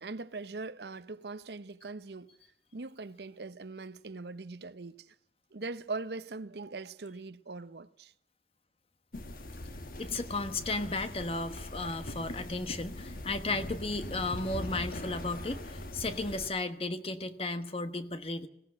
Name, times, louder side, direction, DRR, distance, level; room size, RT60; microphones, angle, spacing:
voice 1, 0.0-2.4 2.7-5.1 5.5-8.1, right 3 dB, 65° right, 0.8 m, -41 dB
sound 1, 9.1-16.5, left 1 dB, 50° left, 1.4 m, -41 dB
voice 2, 10.0-18.5, left 2 dB, 30° left, 1.2 m, -34 dB
20.0 x 17.0 x 7.7 m
head